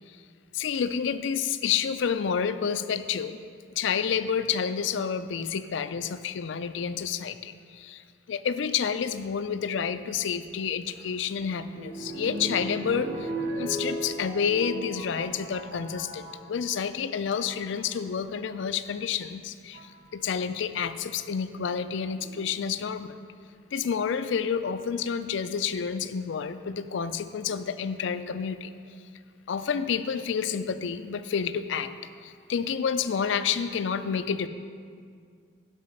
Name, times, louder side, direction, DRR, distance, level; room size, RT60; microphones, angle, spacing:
voice 1, 0.5-3.4 3.8-8.0 8.3-13.3 13.6-23.1 23.7-28.7 29.5-31.9 32.2-34.5, left 7 dB, 70° left, 12 dB, 0.4 m, -29 dB
sound 1, 10.9-16.5 17.2-17.7 18.9-19.0 19.7-20.0 22.2-22.8 23.5-23.6 23.8-23.9, right 1 dB, 65° right, 1.5 m, -37 dB
10.5 x 5.7 x 5.4 m, 2.1 s
head